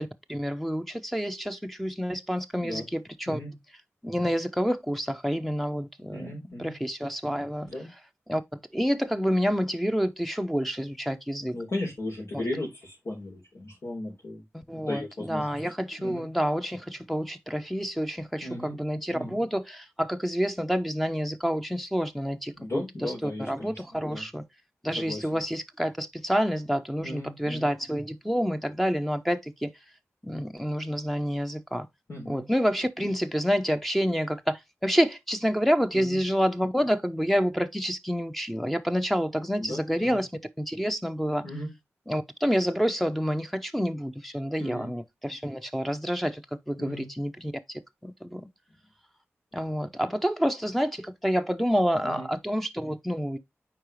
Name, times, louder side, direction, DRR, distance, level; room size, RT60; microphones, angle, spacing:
voice 1, 0.0-3.4 4.0-6.3 6.6-7.7 8.3-8.4 8.7-11.6 12.3-12.4 14.5-24.4 24.8-29.7 30.2-31.9 32.3-40.3 40.6-41.4 42.1-48.4 49.5-53.4, equal, ahead, 0.7 m, -28 dB
voice 2, 2.6-2.9 3.3-3.5 6.1-6.7 7.7-7.9 11.5-14.4 14.9-15.5 16.0-16.2 18.4-18.8 19.1-19.4 22.6-23.8 24.1-24.3 25.0-25.4 27.0-27.7 32.1-32.5 35.9-36.2 39.6-40.2 41.4-41.7 44.6-44.9 46.8-47.1 49.5-49.6 52.0-52.3, left 1 dB, 75° left, 3.7 m, -36 dB
8.7 x 4.8 x 3.2 m
wide cardioid pair, 65°, 5 cm